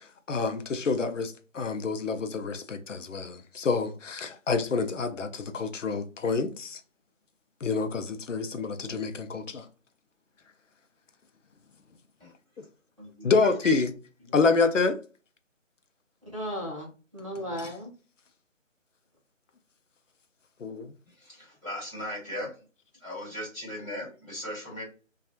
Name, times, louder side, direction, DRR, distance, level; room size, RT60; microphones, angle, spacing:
voice 1, 0.3-6.8 7.6-9.7 12.6-12.7 13.2-13.9 14.3-15.0 20.6-20.9, left 4 dB, 65° left, 0.6 m, -27 dB
voice 2, 13.0-13.3 14.3-14.5 16.2-17.9 24.0-24.1, equal, 25° right, 0.6 m, -37 dB
voice 3, 21.2-22.5 23.0-24.8, equal, 10° left, 1.4 m, -37 dB
2.5 x 2.3 x 2.6 m
figure-of-eight pair, 160°, 40 cm